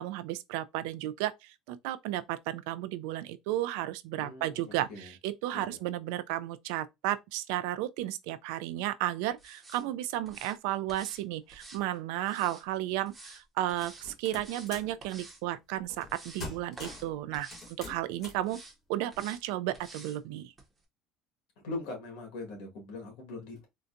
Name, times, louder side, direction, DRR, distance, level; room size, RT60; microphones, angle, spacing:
voice 1, 0.0-17.5 17.8-18.6 18.9-20.5, right 14 dB, 85° right, 0.3 m, -33 dB
voice 2, 4.1-5.1 5.5-5.8 21.6-23.6, left 2 dB, 90° left, 1.6 m, -41 dB
sound 1, 9.4-9.8 10.2-10.5 10.9-11.2 11.5-12.6 13.1-13.4 13.7-14.1 14.3-14.7 15.0-15.4 15.8-16.5 16.8-17.1 17.3-17.7 18.4-18.7 19.1-19.4 19.7-20.2 20.6-20.7, right 2 dB, 15° right, 0.8 m, -50 dB
sound 2, 13.8-15.0 15.9-16.1 16.4-17.1 17.5-18.5, left 3 dB, 35° left, 1.2 m, -44 dB
3.8 x 2.2 x 2.5 m
cardioid pair, 175°, 0 cm